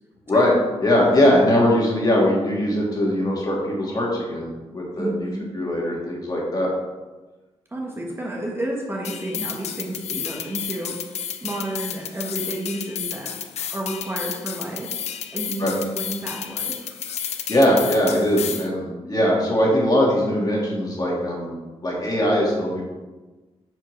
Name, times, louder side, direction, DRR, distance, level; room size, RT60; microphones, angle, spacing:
voice 1, 0.8-5.1 5.4-6.7 15.6-15.7 17.2-21.6 21.8-22.8, left 1 dB, 35° left, -3 dB, 1.8 m, -21 dB
voice 2, 5.0-5.5 7.7-13.4 13.7-16.9, right 1 dB, 20° right, -2 dB, 1.1 m, -31 dB
sound 1, 9.0-18.7, left 8 dB, 80° left, 0.4 m, -32 dB
6.5 x 4.6 x 3.2 m, 1.2 s
cardioid pair, 85°, 11 cm